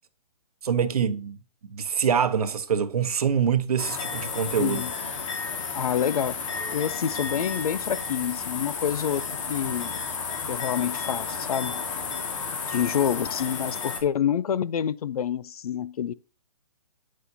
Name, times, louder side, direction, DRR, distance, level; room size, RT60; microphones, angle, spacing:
voice 1, 0.6-1.4 1.7-4.8, right 7 dB, 80° right, 1.0 m, -25 dB
sound 1, 3.8-14.0, left 5 dB, 55° left, 2.0 m, -32 dB
voice 2, 4.6-4.9 5.7-6.4 6.7-9.9 10.5-11.8 12.5-16.1, left 9 dB, 75° left, 0.6 m, -27 dB
9.4 x 6.3 x 2.8 m
hypercardioid pair, 155°, 19 cm